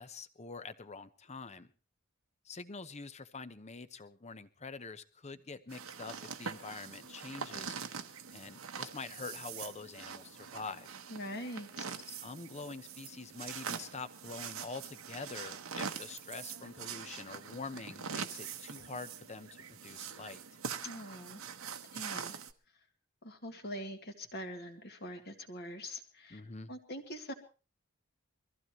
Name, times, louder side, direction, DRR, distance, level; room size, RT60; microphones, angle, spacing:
voice 1, 0.0-1.7 2.4-7.8 8.3-10.9 12.0-20.4 26.3-26.7, left 4 dB, 30° left, 12 dB, 0.8 m, -45 dB
sound 1, 5.7-22.5, right 6 dB, 75° right, 1.0 m, -44 dB
voice 2, 11.1-11.9 20.8-21.4 21.9-22.4 23.2-26.4 26.7-27.3, equal, 50° left, 5 dB, 2.1 m, -43 dB
23.5 x 15.0 x 3.1 m, 0.34 s
head